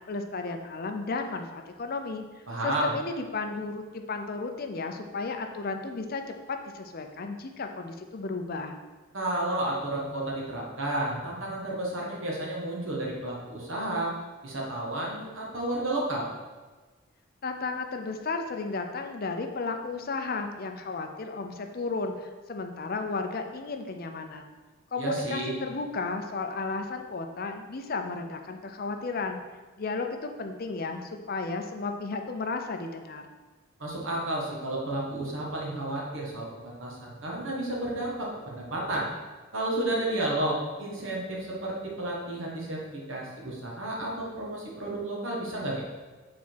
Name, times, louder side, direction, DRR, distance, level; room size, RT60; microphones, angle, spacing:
voice 1, 0.1-2.2 2.6-8.8 17.4-24.4 24.9-29.4 29.8-33.3, left 3 dB, 45° left, 5 dB, 0.6 m, -33 dB
voice 2, 2.5-2.9 9.1-14.1 14.4-16.3 25.0-25.5 33.8-39.1 39.5-45.8, right 1 dB, 80° right, -3 dB, 1.6 m, -31 dB
7.7 x 4.1 x 4.7 m, 1.3 s
head